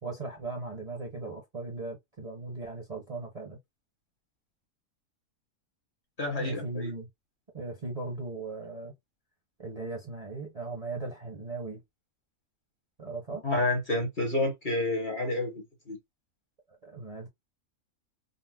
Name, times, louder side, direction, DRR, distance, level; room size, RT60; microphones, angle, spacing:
voice 1, 0.0-3.6 6.4-7.1 7.5-8.9 9.6-11.8 13.0-13.4 16.8-17.3, right 3 dB, 35° right, 0.6 m, -38 dB
voice 2, 6.2-6.9 13.4-16.0, left 2 dB, 40° left, 0.9 m, -29 dB
3.9 x 2.0 x 2.2 m
omnidirectional pair, 1.5 m